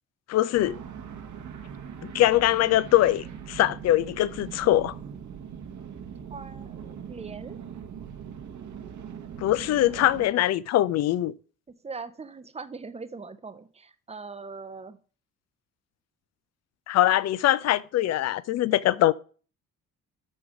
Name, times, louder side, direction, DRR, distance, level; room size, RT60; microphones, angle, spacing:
voice 1, 0.3-0.8 2.0-5.0 9.4-11.3 16.9-19.1, left 14 dB, 40° left, 0.5 m, -22 dB
sound 1, 0.5-10.3, right 8 dB, 40° right, 1.1 m, -41 dB
voice 2, 6.3-7.6 11.8-15.0, right 4 dB, 15° right, 0.8 m, -41 dB
6.1 x 5.3 x 5.8 m
figure-of-eight pair, 40°, 43 cm